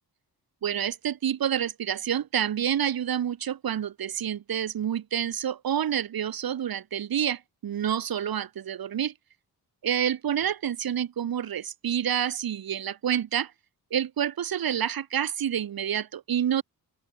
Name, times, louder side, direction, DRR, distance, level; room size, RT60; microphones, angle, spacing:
voice 1, 0.6-9.1 9.8-13.5 13.9-16.6, right 9 dB, 65° right, 2.6 m, -28 dB
open air
wide cardioid pair, 180°, 38 cm